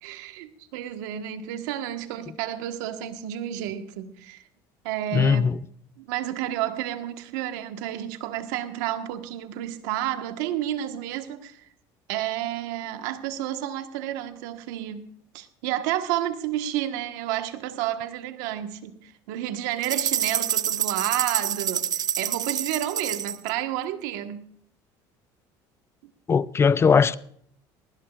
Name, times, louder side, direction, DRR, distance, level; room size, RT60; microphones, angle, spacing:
voice 1, 0.0-4.4 4.8-5.5 6.0-11.6 12.1-15.1 15.3-24.5 26.0-26.1, right 12 dB, 85° right, 1.4 m, -31 dB
voice 2, 5.1-5.5 26.3-27.2, left 6 dB, 25° left, 0.5 m, -19 dB
sound 1, 19.8-23.5, right 10 dB, 40° right, 0.6 m, -27 dB
19.5 x 19.0 x 2.4 m
supercardioid pair, 100°, 10 cm